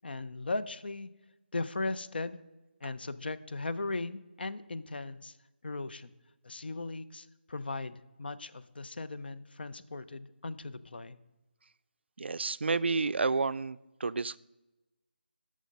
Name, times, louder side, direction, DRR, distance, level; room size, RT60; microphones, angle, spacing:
voice 1, 0.0-1.1 1.5-2.4 2.8-5.3 5.6-6.1 6.4-11.2, left 3 dB, 60° left, 13 dB, 0.5 m, -37 dB
voice 2, 12.2-14.4, right 4 dB, 80° right, 16 dB, 0.3 m, -30 dB
8.3 x 6.3 x 5.2 m, 1.0 s
figure-of-eight pair, 175°, 6 cm